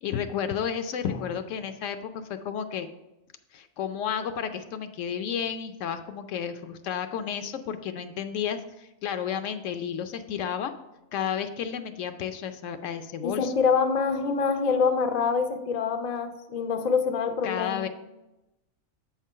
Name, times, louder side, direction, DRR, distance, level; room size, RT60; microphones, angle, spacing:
voice 1, 0.0-2.9 3.5-10.7 11.1-13.5 17.4-17.9, left 8 dB, 70° left, 9 dB, 0.9 m, -32 dB
voice 2, 13.2-17.9, left 5 dB, 55° left, 6 dB, 0.5 m, -25 dB
7.8 x 3.7 x 5.4 m, 0.96 s
omnidirectional pair, 1.4 m